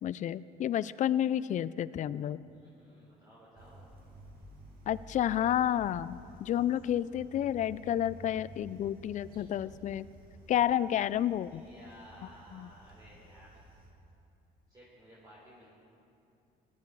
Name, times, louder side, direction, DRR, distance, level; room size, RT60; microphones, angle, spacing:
voice 1, 0.0-2.4 4.9-10.1 10.5-11.6 12.5-12.7, left 11 dB, 45° left, 18 dB, 0.4 m, -30 dB
voice 2, 2.4-3.9 10.7-10.9 11.5-13.6 14.7-15.7, equal, 25° right, -7 dB, 3.6 m, -56 dB
sound 1, 3.6-13.9, equal, 60° right, 2.5 m, -52 dB
17.5 x 12.0 x 4.7 m, 2.6 s
cardioid pair, 110°, 17 cm